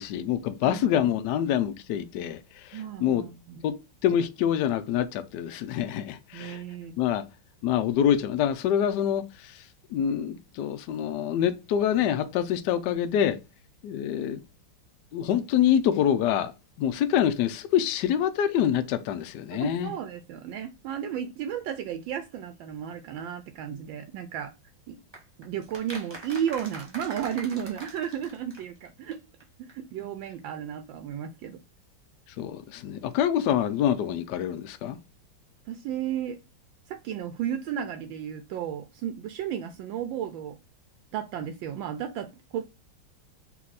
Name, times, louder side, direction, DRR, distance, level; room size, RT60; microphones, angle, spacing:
voice 1, 0.0-3.2 3.6-3.8 4.0-6.6 7.0-7.2 7.6-9.6 9.9-13.4 13.8-14.4 15.1-16.5 16.8-19.9 32.4-35.0, left 9 dB, 75° left, 1.0 m, -26 dB
voice 2, 0.6-1.1 2.7-3.6 6.3-6.9 19.5-24.5 24.9-25.0 25.4-29.2 29.6-31.6 35.7-36.4 36.9-40.6 41.1-42.6, right 9 dB, 75° right, 1.2 m, -33 dB
sound 1, 25.1-29.1 29.4-29.5 29.7-29.8, right 2 dB, 20° right, 0.7 m, -43 dB
4.2 x 2.7 x 3.9 m
omnidirectional pair, 2.3 m